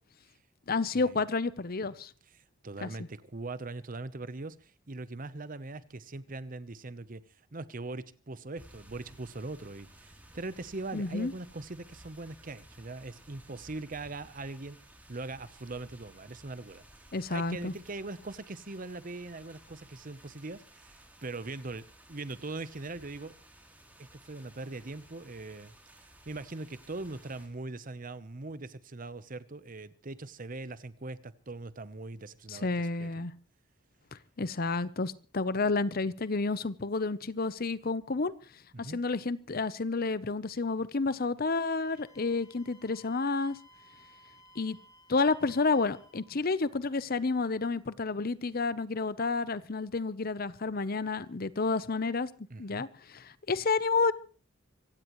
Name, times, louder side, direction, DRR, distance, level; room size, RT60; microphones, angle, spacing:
voice 1, 0.7-2.1 2.8-2.9 10.9-11.3 17.1-17.7 32.5-33.3 34.4-38.3 38.8-43.6 44.6-44.8 45.1-52.3 52.6-52.9 53.1-54.1, left 3 dB, 50° left, 0.8 m, -30 dB
voice 2, 2.3-7.2 7.5-14.8 15.1-16.8 17.3-23.4 24.0-25.7 26.3-33.1 38.7-39.0 52.5-52.8, right 2 dB, 45° right, 0.9 m, -41 dB
sound 1, 8.6-27.5, right 1 dB, 10° right, 3.2 m, -56 dB
Wind instrument woodwind instrument, 41.6-46.2, equal, 20° left, 5.3 m, -58 dB
25.0 x 16.5 x 3.1 m
head